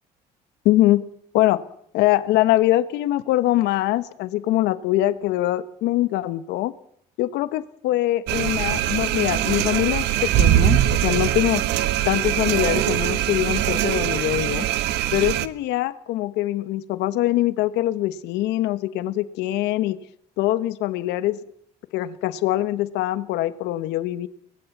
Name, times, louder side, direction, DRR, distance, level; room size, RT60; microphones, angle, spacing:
voice 1, 0.6-1.0 1.3-1.6 1.9-6.7 7.2-11.6 12.0-14.7 15.1-20.0 20.4-21.4 21.9-24.3, left 15 dB, 90° left, 14 dB, 1.3 m, -23 dB
sound 1, 8.3-15.5, right 13 dB, 85° right, 1.2 m, -22 dB
23.5 x 19.0 x 7.3 m, 0.69 s
cardioid pair, 110°, 17 cm